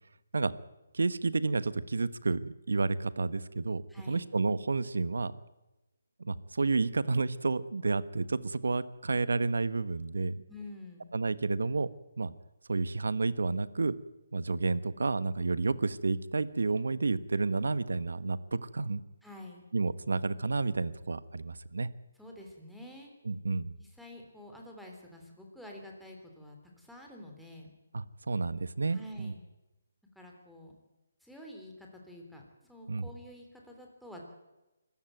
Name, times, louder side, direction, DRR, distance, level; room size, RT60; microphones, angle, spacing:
voice 1, 0.9-3.8 4.1-5.3 6.2-10.4 11.1-11.9 12.2-12.3 12.7-14.0 14.3-19.0 19.7-21.9 23.2-23.7 27.9-29.3 32.9-33.1, right 3 dB, 85° right, 16 dB, 1.3 m, -30 dB
voice 2, 3.9-4.3 10.5-11.1 19.2-19.7 22.2-23.1 23.8-27.7 28.9-29.4 30.1-30.7 31.2-34.2, left 1 dB, ahead, -1 dB, 3.3 m, -48 dB
25.0 x 15.0 x 9.2 m, 1.0 s
hypercardioid pair, 170°, 0 cm